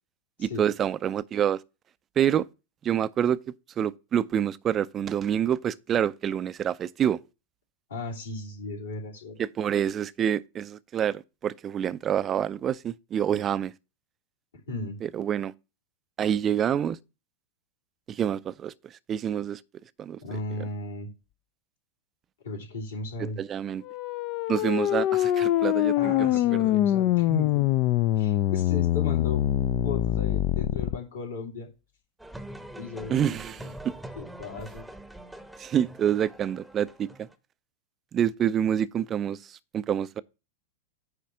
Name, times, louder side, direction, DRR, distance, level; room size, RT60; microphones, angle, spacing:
voice 1, 0.4-1.6 2.2-2.5 2.8-3.4 3.8-7.2 9.4-13.7 15.0-15.5 16.2-17.0 18.1-18.7 19.1-19.6 20.0-20.2 23.2-23.8 24.5-26.7 33.1-33.6 33.8-34.0 35.6-37.3 38.1-40.2, right 9 dB, 25° right, 0.5 m, -27 dB
voice 2, 7.9-9.4 14.7-15.0 20.2-21.1 22.4-23.4 26.0-27.7 28.2-29.4 29.8-31.7 32.7-33.7 34.1-34.8, left 2 dB, 65° left, 2.9 m, -36 dB
sound 1, 23.9-31.0, left 13 dB, 40° left, 0.4 m, -24 dB
sound 2, 32.2-37.3, right 1 dB, ahead, 0.9 m, -43 dB
9.6 x 3.3 x 6.2 m
figure-of-eight pair, 90°, 0 cm